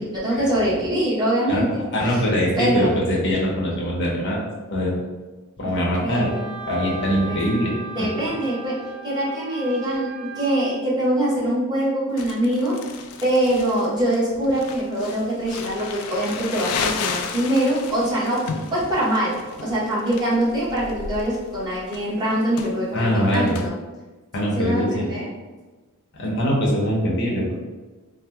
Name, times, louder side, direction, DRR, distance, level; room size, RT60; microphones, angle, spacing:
voice 1, 0.1-2.3 2.6-3.0 6.0-6.5 7.3-7.4 7.9-8.8 9.0-12.7 13.2-18.4 18.7-23.8 24.5-25.3, right 1 dB, 20° right, -8 dB, 1.0 m, -23 dB
voice 2, 1.9-4.4 4.7-5.0 5.6-6.3 6.7-8.1 22.9-23.6 24.3-25.1 26.2-27.6, equal, 55° left, -4 dB, 0.7 m, -22 dB
Wind instrument woodwind instrument, 6.1-10.7, right 4 dB, 40° right, 0.6 m, -37 dB
Crumpling crinkling, 12.2-23.7, left 5 dB, 85° left, 0.3 m, -33 dB
2.7 x 2.1 x 3.4 m, 1.3 s
head